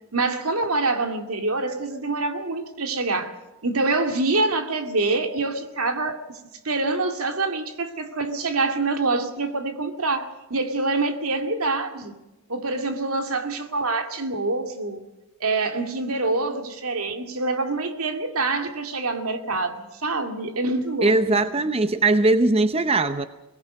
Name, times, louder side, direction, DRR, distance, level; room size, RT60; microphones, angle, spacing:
voice 1, 0.1-3.3 3.6-6.3 6.6-12.1 12.5-15.0 15.4-21.4, right 3 dB, 80° right, 6 dB, 2.4 m, -25 dB
voice 2, 21.0-23.3, right 2 dB, 25° right, 11 dB, 0.7 m, -20 dB
22.5 x 19.5 x 6.5 m, 1.1 s
head